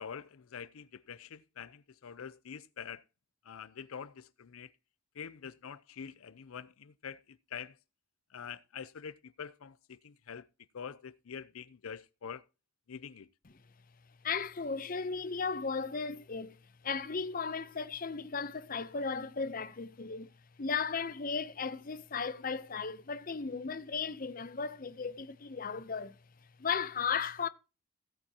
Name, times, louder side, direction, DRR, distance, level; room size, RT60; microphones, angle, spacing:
voice 1, 0.0-3.0 3.4-4.7 5.2-7.8 8.3-10.5 10.7-12.4 12.9-13.3, left 7 dB, 85° left, 0.5 m, -45 dB
voice 2, 14.2-16.6 16.8-20.3 20.6-26.2 26.6-27.5, left 5 dB, 40° left, 0.7 m, -35 dB
16.5 x 8.6 x 2.9 m
head